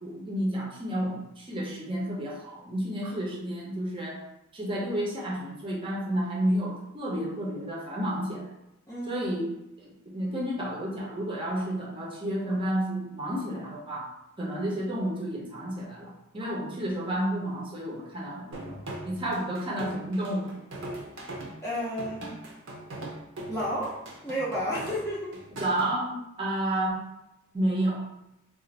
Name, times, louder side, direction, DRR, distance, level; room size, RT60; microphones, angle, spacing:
voice 1, 0.0-4.2 4.5-8.5 9.1-14.1 14.4-20.5 25.6-27.0 27.5-28.0, right 1 dB, 25° right, -3 dB, 0.7 m, -31 dB
voice 2, 8.9-9.2 21.6-22.4 23.5-24.0 24.2-25.3, equal, 15° left, -8 dB, 0.6 m, -31 dB
sound 1, 18.5-25.9, right 1 dB, 65° right, 0.6 m, -40 dB
2.5 x 2.4 x 4.1 m, 0.88 s
head